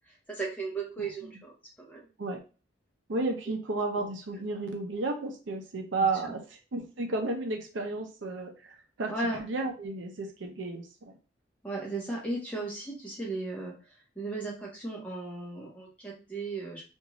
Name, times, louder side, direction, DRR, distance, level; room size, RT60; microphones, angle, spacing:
voice 1, 0.3-2.0 9.1-9.4 11.6-13.7 14.2-16.8, right 2 dB, 5° left, -4 dB, 0.9 m, -35 dB
voice 2, 3.1-9.1 9.4-11.2, right 3 dB, 70° right, 3 dB, 0.6 m, -33 dB
2.6 x 2.5 x 3.0 m, 0.33 s
head